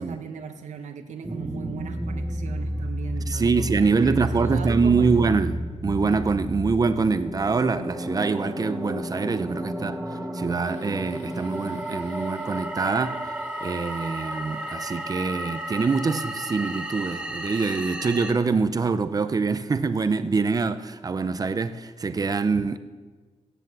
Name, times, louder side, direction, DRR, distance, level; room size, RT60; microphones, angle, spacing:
voice 1, 0.0-5.3, right 6 dB, 80° right, 1.4 m, -38 dB
sound 1, 1.2-18.3, equal, 10° right, 1.2 m, -32 dB
voice 2, 3.3-10.0 10.3-13.3 13.6-22.8, right 4 dB, 30° right, 0.6 m, -24 dB
sound 2, 10.6-18.0, left 3 dB, 80° left, 2.5 m, -53 dB
16.0 x 10.0 x 7.5 m
wide cardioid pair, 180°, 12 cm